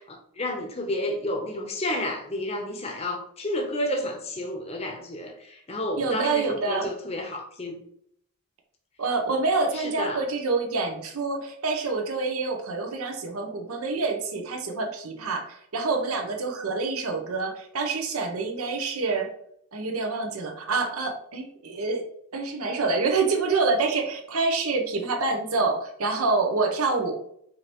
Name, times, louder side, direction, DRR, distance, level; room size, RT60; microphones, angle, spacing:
voice 1, 0.0-7.8 9.7-10.2, left 1 dB, 30° left, 2 dB, 0.7 m, -31 dB
voice 2, 6.0-6.9 9.0-19.3 19.7-22.1 22.3-27.1, right 3 dB, 85° right, 3 dB, 0.8 m, -27 dB
5.0 x 2.7 x 3.0 m, 0.70 s
head